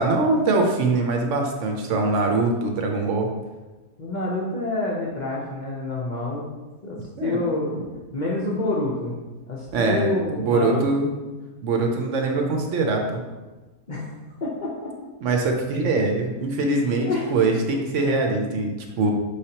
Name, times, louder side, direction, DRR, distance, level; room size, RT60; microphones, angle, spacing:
voice 1, 0.0-3.3 7.2-7.4 9.7-11.1 11.6-13.2 15.2-19.1, right 3 dB, 65° right, 2 dB, 0.9 m, -23 dB
voice 2, 4.0-6.5 6.8-7.7 8.1-9.2 9.5-11.0 13.9-14.1 14.4-15.0 17.0-17.3, left 2 dB, 50° left, -4 dB, 0.6 m, -27 dB
5.5 x 3.3 x 2.8 m, 1.2 s
omnidirectional pair, 1.5 m